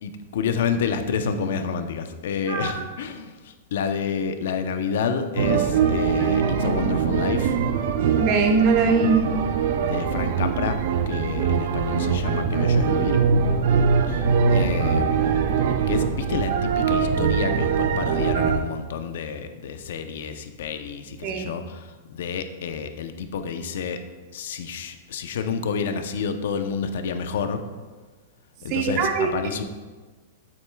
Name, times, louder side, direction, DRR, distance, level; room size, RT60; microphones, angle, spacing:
voice 1, 0.0-7.6 9.8-13.2 14.1-15.5 15.9-24.0 24.3-27.6 28.6-29.6, left 6 dB, 70° left, 8 dB, 0.7 m, -29 dB
voice 2, 2.5-2.8 8.2-9.2 21.2-21.5 28.7-29.3, right 4 dB, 40° right, 3 dB, 1.0 m, -21 dB
sound 1, 5.4-18.6, right 6 dB, 60° right, 0.6 m, -22 dB
8.6 x 7.7 x 2.3 m, 1.3 s
supercardioid pair, 150°, 0 cm